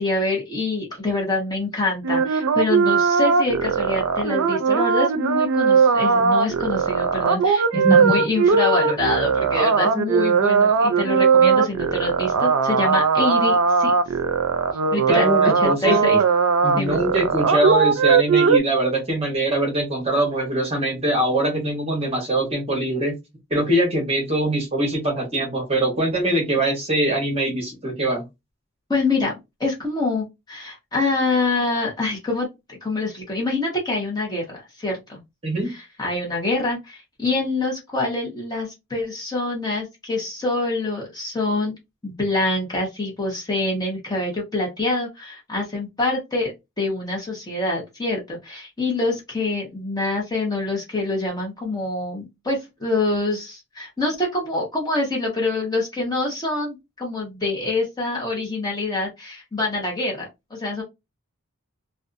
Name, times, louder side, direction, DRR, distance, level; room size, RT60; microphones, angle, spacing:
voice 1, 0.0-13.9 14.9-15.3 15.6-16.2 16.8-17.0 28.9-29.3 29.6-35.2 35.6-41.7 42.0-60.8, left 2 dB, 20° left, -2 dB, 0.8 m, -25 dB
sound 1, 2.0-18.6, right 5 dB, 85° right, 0.4 m, -19 dB
voice 2, 7.7-8.2 15.1-16.0 16.6-23.2 23.5-28.2 35.4-35.7, right 1 dB, 25° right, 1 dB, 0.9 m, -22 dB
2.5 x 2.3 x 2.5 m, 0.22 s
head